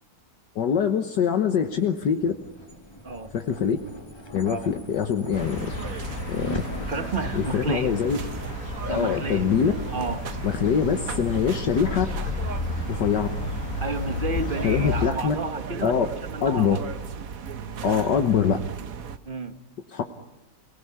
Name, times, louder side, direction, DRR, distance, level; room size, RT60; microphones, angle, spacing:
voice 1, 0.6-2.3 3.3-3.8 4.3-5.7 6.3-6.6 7.3-8.2 8.8-9.7 10.4-12.1 12.9-13.3 14.6-15.4 15.8-16.1 16.4-16.8 17.8-18.6 19.9-20.0, left 7 dB, 70° left, 1.8 m, -23 dB
sound 1, 1.6-12.0, left 1 dB, 15° left, 1.9 m, -42 dB
sound 2, 5.3-15.1, left 3 dB, 45° left, 2.3 m, -32 dB
sound 3, 5.3-19.2, right 6 dB, 55° right, 1.4 m, -36 dB
voice 2, 6.9-7.9 8.9-9.5 9.9-10.3 13.8-16.8 19.2-19.6, right 3 dB, 30° right, 1.3 m, -31 dB
29.0 x 18.5 x 9.5 m
omnidirectional pair, 2.0 m